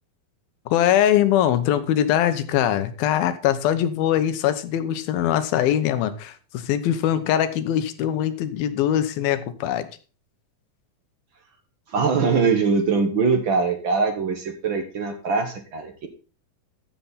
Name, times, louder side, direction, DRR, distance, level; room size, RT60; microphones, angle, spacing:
voice 1, 0.7-9.9, left 11 dB, 90° left, 11 dB, 2.8 m, -22 dB
voice 2, 11.9-16.1, right 5 dB, 55° right, 5 dB, 1.3 m, -22 dB
14.5 x 7.2 x 4.1 m, 0.36 s
omnidirectional pair, 4.1 m